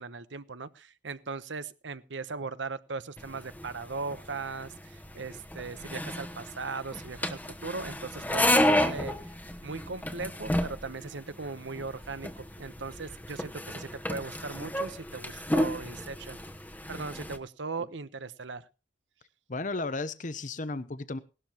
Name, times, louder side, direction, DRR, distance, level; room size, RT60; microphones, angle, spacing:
voice 1, 0.0-9.3 9.6-16.4 16.9-18.7, right 4 dB, 80° right, 13 dB, 1.0 m, -38 dB
sound 1, 3.2-17.4, left 1 dB, 10° left, 1.0 m, -32 dB
voice 2, 19.5-21.2, left 3 dB, 45° left, 13 dB, 0.8 m, -34 dB
18.5 x 12.5 x 3.0 m, 0.32 s
head